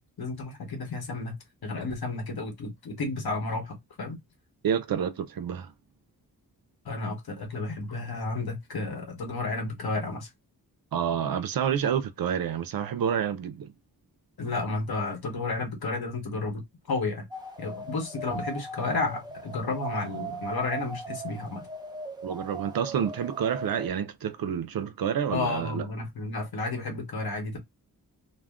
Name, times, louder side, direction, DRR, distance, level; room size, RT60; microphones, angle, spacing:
voice 1, 0.0-1.4 1.6-4.2 6.8-10.3 14.4-16.6 16.9-17.3 17.6-21.7 25.3-27.6, left 3 dB, 80° left, 1.1 m, -32 dB
voice 2, 4.6-5.7 10.9-13.7 22.2-25.9, right 8 dB, 70° right, 0.5 m, -28 dB
sound 1, 17.3-23.9, right 3 dB, 10° right, 0.6 m, -39 dB
2.3 x 2.1 x 3.5 m
wide cardioid pair, 95°, 37 cm